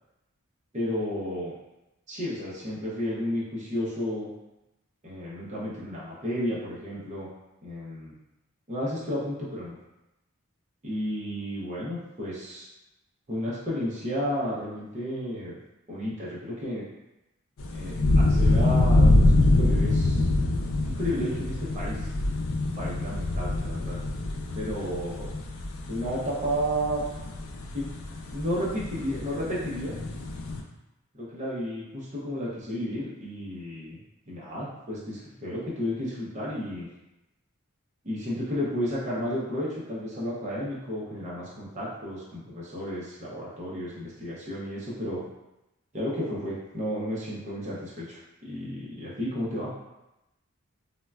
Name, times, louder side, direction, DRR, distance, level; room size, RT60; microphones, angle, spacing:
voice 1, 0.7-1.5 2.1-4.3 5.0-7.3 7.6-8.1 8.7-9.8 10.8-12.7 13.3-15.6 15.9-16.8 17.7-20.2 20.8-22.1 22.8-24.0 24.5-25.3 25.9-27.0 27.7-27.9 28.3-30.0 31.2-34.0 34.3-36.9 38.0-45.2 45.9-49.7, equal, 35° right, -7 dB, 0.6 m, -32 dB
sound 1, 17.6-30.6, left 2 dB, 75° left, 0.4 m, -25 dB
3.7 x 2.1 x 2.2 m, 0.94 s
head